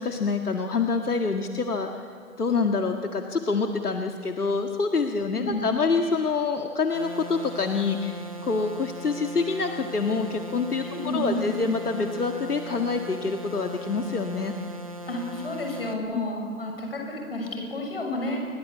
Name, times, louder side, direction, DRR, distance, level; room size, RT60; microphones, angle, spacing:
voice 1, 0.0-1.9 2.4-10.9 11.1-14.5 16.1-16.2, left 4 dB, 75° left, 4 dB, 1.9 m, -26 dB
sound 1, 6.9-15.9, right 1 dB, 25° right, 1.1 m, -39 dB
voice 2, 10.8-11.5 15.1-18.4, left 1 dB, 40° left, 1 dB, 6.6 m, -31 dB
28.5 x 22.5 x 8.6 m, 2.2 s
hypercardioid pair, 175°, 46 cm